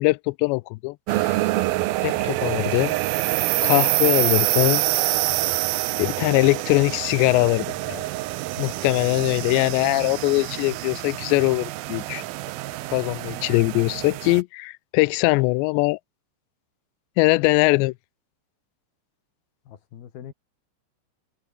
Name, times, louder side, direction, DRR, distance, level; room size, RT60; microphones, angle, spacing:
voice 1, 0.0-1.4 2.0-3.0 3.6-4.8 6.0-8.0 8.6-12.2 12.9-16.0 17.2-17.9, left 24 dB, 85° left, 2.7 m, -22 dB
sound 1, 1.1-14.4, right 17 dB, 80° right, 2.2 m, -26 dB
voice 2, 8.9-9.5 19.7-20.3, left 9 dB, 60° left, 4.0 m, -42 dB
omnidirectional pair, 5.2 m